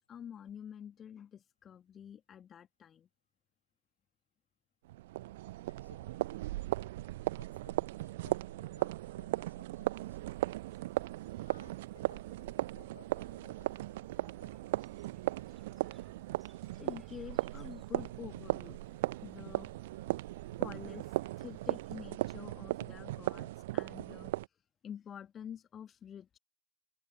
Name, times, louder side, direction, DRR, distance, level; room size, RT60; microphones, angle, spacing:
voice 1, 0.0-3.1 8.3-8.4 16.8-18.8 19.2-19.7 20.6-24.4 24.8-26.4, left 8 dB, 25° left, 1.8 m, -48 dB
sound 1, 4.8-24.5, right 17 dB, 55° right, 0.8 m, -37 dB
voice 2, 5.7-6.6 7.4-10.5 11.4-14.5, left 5 dB, 75° left, 5.7 m, -62 dB
sound 2, 9.9-22.0, right 3 dB, 10° right, 5.1 m, -64 dB
figure-of-eight pair, 90°, 0 cm